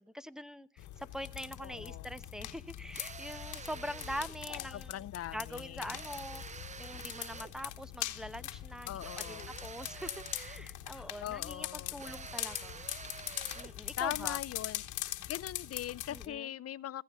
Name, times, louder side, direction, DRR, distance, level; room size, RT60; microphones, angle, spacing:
voice 1, 0.0-5.1 5.3-12.9 13.5-14.4 16.1-16.5, equal, ahead, 1.0 m, -44 dB
sound 1, 0.8-16.3, left 13 dB, 80° left, 1.2 m, -42 dB
voice 2, 1.6-2.1 4.7-6.0 8.9-9.5 10.9-12.0 14.0-14.8 15.3-17.0, left 12 dB, 55° left, 0.6 m, -41 dB
sound 2, 2.9-4.4 5.9-7.6 9.0-10.7 12.0-13.8, right 5 dB, 25° right, 0.6 m, -47 dB
16.0 x 15.5 x 3.6 m
cardioid pair, 90°, 30 cm